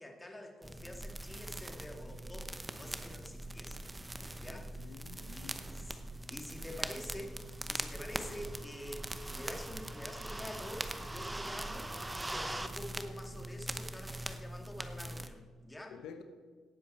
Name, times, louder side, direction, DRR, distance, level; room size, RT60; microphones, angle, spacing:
voice 1, 0.0-3.8 4.3-5.0 5.3-6.0 6.3-16.0, left 1 dB, 15° left, 2 dB, 2.1 m, -47 dB
sound 1, 0.6-15.3, right 1 dB, 10° right, 0.9 m, -42 dB
voice 2, 4.4-5.7 15.9-16.2, left 7 dB, 85° left, 7 dB, 0.9 m, -51 dB
17.5 x 7.5 x 4.3 m, 1.5 s
cardioid pair, 90°, 0 cm